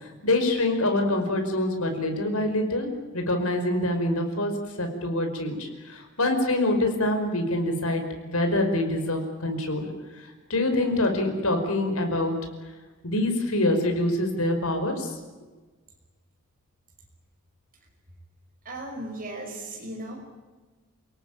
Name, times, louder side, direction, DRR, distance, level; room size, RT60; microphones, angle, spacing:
voice 1, 0.0-2.9 3.1-4.5 4.8-9.9 10.2-12.4 13.0-15.1, left 1 dB, 75° left, 5 dB, 5.3 m, -25 dB
voice 2, 18.6-20.1, right 1 dB, 40° right, 0 dB, 5.6 m, -36 dB
29.0 x 18.0 x 9.2 m, 1.3 s
head